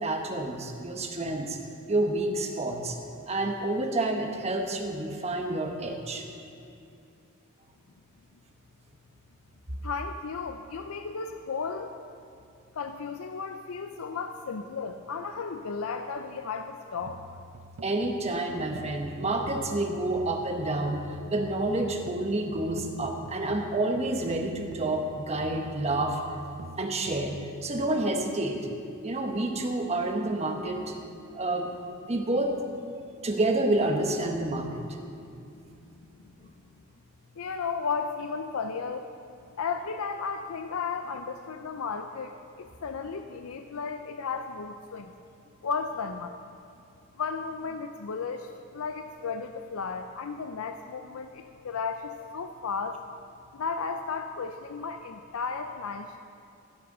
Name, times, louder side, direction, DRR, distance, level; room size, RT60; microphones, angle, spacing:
voice 1, 0.0-1.6 1.9-3.0 3.3-6.3 17.8-26.2 26.8-27.4 27.6-28.6 29.0-30.9 31.3-31.7 32.0-32.6 33.2-34.8, right 2 dB, 30° right, 3 dB, 1.1 m, -29 dB
voice 2, 9.8-11.9 12.8-17.2 36.2-36.5 37.4-39.1 39.6-42.3 42.6-45.1 45.6-46.4 47.2-53.0 53.5-56.2, left 5 dB, 80° left, 7 dB, 0.5 m, -34 dB
sound 1, 17.0-28.0, right 1 dB, 80° right, 0.6 m, -45 dB
15.5 x 6.6 x 6.6 m, 2.5 s
head